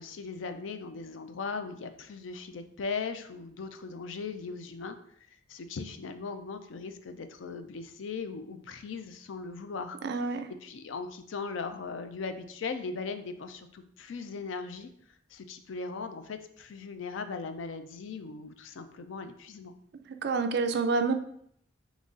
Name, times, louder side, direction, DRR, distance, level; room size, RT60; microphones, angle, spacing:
voice 1, 0.0-5.0 5.5-10.0 10.6-14.9 15.3-19.7, left 4 dB, 80° left, 9 dB, 0.4 m, -38 dB
voice 2, 10.0-10.5 20.2-21.1, right 4 dB, 60° right, 7 dB, 0.4 m, -27 dB
3.8 x 3.0 x 3.7 m, 0.66 s
head